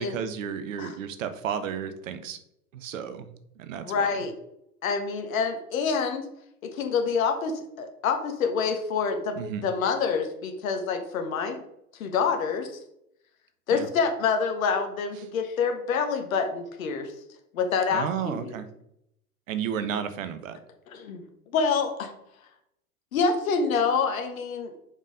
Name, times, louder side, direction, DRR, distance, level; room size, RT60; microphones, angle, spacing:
voice 1, 0.0-2.4 2.7-3.3 3.6-4.1 9.3-9.7 13.7-13.9 17.9-18.7 19.5-20.6, right 8 dB, 60° right, 11 dB, 0.9 m, -32 dB
voice 2, 3.8-4.3 4.8-6.2 6.7-9.4 9.6-11.6 12.0-12.7 13.7-17.1 17.5-18.5 20.9-21.2 21.5-22.1 23.1-24.7, left 5 dB, 60° left, 6 dB, 1.5 m, -27 dB
5.4 x 5.1 x 5.0 m, 0.78 s
figure-of-eight pair, 90°, 45 cm